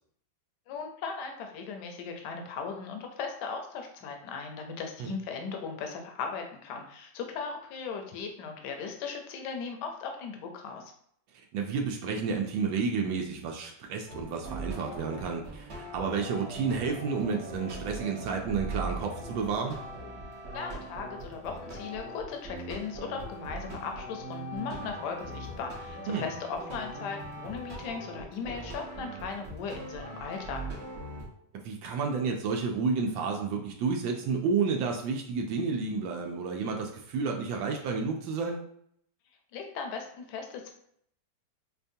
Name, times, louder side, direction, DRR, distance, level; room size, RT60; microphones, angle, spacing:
voice 1, 0.7-10.9 20.5-30.6 39.5-40.7, left 5 dB, 70° left, 3 dB, 1.2 m, -38 dB
voice 2, 11.5-19.8 26.1-26.3 31.6-38.6, right 5 dB, 85° right, 2 dB, 1.3 m, -31 dB
sound 1, 14.1-31.3, right 1 dB, 45° right, 0.9 m, -40 dB
5.3 x 2.2 x 2.6 m, 0.68 s
omnidirectional pair, 2.1 m